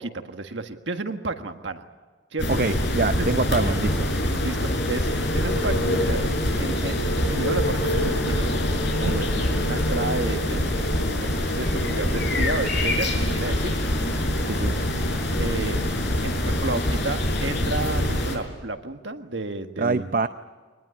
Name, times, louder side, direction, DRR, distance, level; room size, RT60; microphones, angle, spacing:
voice 1, 0.0-1.8 2.3-2.6 3.2-3.3 4.4-7.0 7.2-8.5 8.8-13.8 15.4-15.8 16.2-20.1, right 2 dB, 70° right, 7 dB, 1.6 m, -32 dB
sound 1, 2.4-18.4, left 1 dB, 60° left, 6.0 m, -24 dB
voice 2, 2.6-4.1 14.5-14.7 19.8-20.3, right 3 dB, 45° right, 10 dB, 0.7 m, -25 dB
sound 2, 7.4-13.3 13.7-17.0, equal, 90° right, 3.3 m, -40 dB
25.0 x 20.0 x 9.9 m, 1.4 s
head